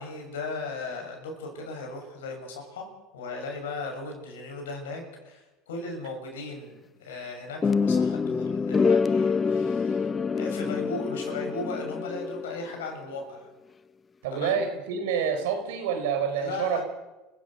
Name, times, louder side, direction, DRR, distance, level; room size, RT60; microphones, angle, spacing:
voice 1, 0.0-2.9 3.1-10.1 10.3-13.5 14.3-14.6 16.4-16.8, left 3 dB, 85° left, 3 dB, 6.9 m, -37 dB
sound 1, 7.6-12.7, left 5 dB, 25° left, 0.7 m, -26 dB
voice 2, 14.2-16.8, right 7 dB, 80° right, 7 dB, 3.8 m, -27 dB
29.0 x 15.5 x 6.7 m, 1.1 s
hypercardioid pair, 90°, 0 cm